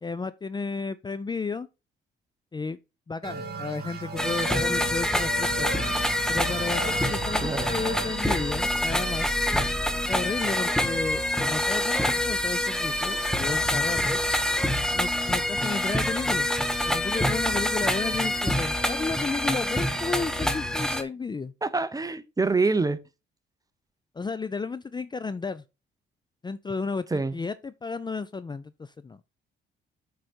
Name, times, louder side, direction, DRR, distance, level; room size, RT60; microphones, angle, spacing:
voice 1, 0.0-1.7 2.5-2.8 3.1-5.8 6.3-9.4 10.1-14.2 14.9-16.5 16.9-21.5 24.1-25.6 26.4-29.2, left 4 dB, 20° left, 0.5 m, -33 dB
sound 1, 3.2-10.5, right 3 dB, 55° right, 2.5 m, -37 dB
sound 2, 4.2-21.0, left 1 dB, 5° left, 1.2 m, -26 dB
voice 2, 7.4-7.7 21.6-23.0 27.1-27.3, right 3 dB, 20° right, 0.9 m, -25 dB
7.8 x 5.1 x 4.4 m
cardioid pair, 90°, 20 cm